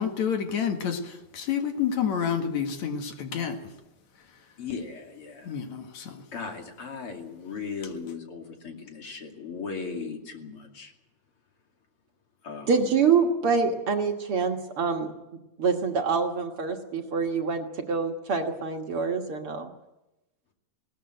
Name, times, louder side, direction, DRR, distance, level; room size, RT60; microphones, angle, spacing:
voice 1, 0.0-3.6 5.4-6.2, left 7 dB, 70° left, 5 dB, 3.1 m, -29 dB
voice 2, 4.6-5.5 6.3-10.9 12.4-12.9, left 5 dB, 50° left, 2 dB, 3.3 m, -37 dB
voice 3, 12.7-15.1 15.6-19.7, right 5 dB, 55° right, 3 dB, 2.2 m, -26 dB
20.0 x 18.5 x 7.8 m, 0.96 s
omnidirectional pair, 3.3 m